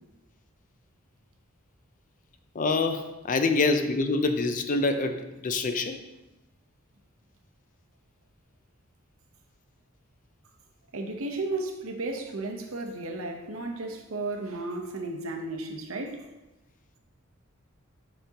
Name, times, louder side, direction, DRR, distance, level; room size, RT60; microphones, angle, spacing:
voice 1, 2.5-6.0, left 3 dB, 40° left, 0.5 m, -26 dB
voice 2, 10.9-16.2, right 2 dB, 80° right, 0.9 m, -34 dB
7.2 x 5.0 x 2.9 m
head